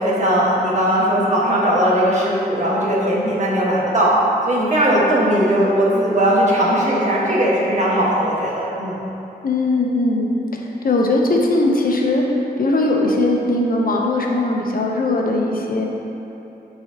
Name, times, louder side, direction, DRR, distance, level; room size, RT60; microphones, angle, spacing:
voice 1, 0.0-4.1 4.4-9.0, right 1 dB, 45° right, -6 dB, 1.5 m, -18 dB
voice 2, 9.4-10.3 10.5-12.2 12.6-15.9, left 2 dB, 55° left, 0 dB, 0.8 m, -19 dB
8.7 x 4.2 x 2.9 m, 3.0 s
cardioid pair, 75°, 17 cm